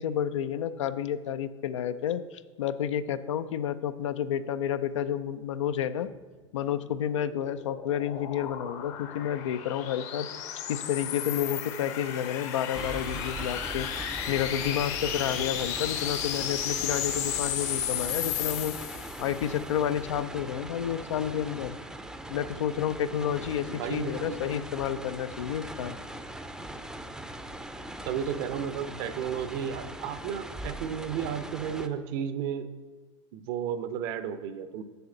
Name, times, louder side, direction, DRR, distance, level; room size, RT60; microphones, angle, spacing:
voice 1, 0.0-6.1 6.5-10.3 10.7-13.9 14.3-18.7 19.2-21.8 22.3-26.0, left 9 dB, 75° left, 13 dB, 0.5 m, -30 dB
sound 1, 6.9-19.4, left 9 dB, 50° left, 0.9 m, -34 dB
sound 2, 12.7-31.9, right 1 dB, 5° right, 0.5 m, -41 dB
voice 2, 23.7-24.4 28.0-32.7 33.3-34.8, right 8 dB, 55° right, 12 dB, 0.6 m, -33 dB
8.0 x 6.9 x 3.8 m, 1.4 s
hypercardioid pair, 95°, 16 cm